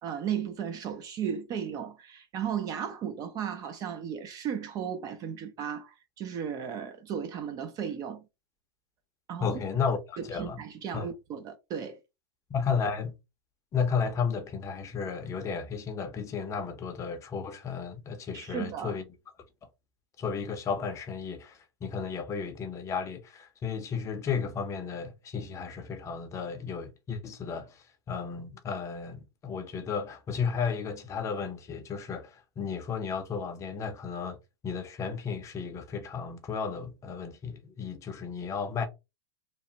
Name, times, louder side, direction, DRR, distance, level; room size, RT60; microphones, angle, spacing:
voice 1, 0.0-8.2 9.3-9.5 10.2-12.0 18.3-19.0, right 8 dB, 30° right, 0.4 m, -35 dB
voice 2, 9.4-10.6 10.9-11.1 12.5-13.2 13.7-19.0 19.6-19.7 20.2-34.4 34.6-38.9, left 6 dB, 20° left, 0.6 m, -33 dB
2.9 x 2.1 x 2.7 m
hypercardioid pair, 130°, 14 cm